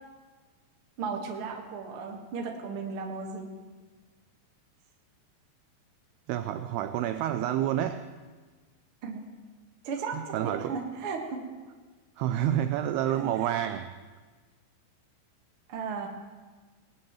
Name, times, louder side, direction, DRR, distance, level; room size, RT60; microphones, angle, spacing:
voice 1, 1.0-3.5 9.0-9.3 9.8-11.4 13.1-13.5 15.7-16.1, right 5 dB, 60° right, 1 dB, 1.4 m, -35 dB
voice 2, 6.3-8.1 10.1-10.8 12.2-14.0, right 11 dB, 85° right, 10 dB, 2.3 m, -29 dB
20.0 x 18.5 x 3.1 m, 1.4 s
omnidirectional pair, 5.1 m